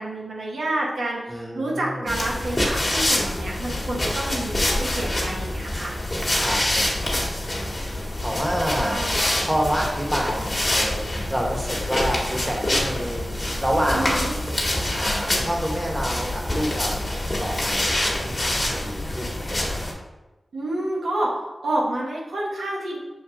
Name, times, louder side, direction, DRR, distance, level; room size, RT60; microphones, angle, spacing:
voice 1, 0.0-5.9 8.7-9.2 13.9-14.3 20.5-23.0, right 1 dB, 90° right, -3 dB, 0.9 m, -29 dB
voice 2, 1.3-2.2 6.3-7.2 7.9-9.0 9.4-14.4 14.9-17.1 17.4-19.8, equal, 10° right, -1 dB, 1.1 m, -28 dB
sound 1, 2.1-19.9, left 1 dB, 40° left, 1.3 m, -26 dB
6.1 x 2.5 x 3.5 m, 1.1 s
cardioid pair, 45°, 0 cm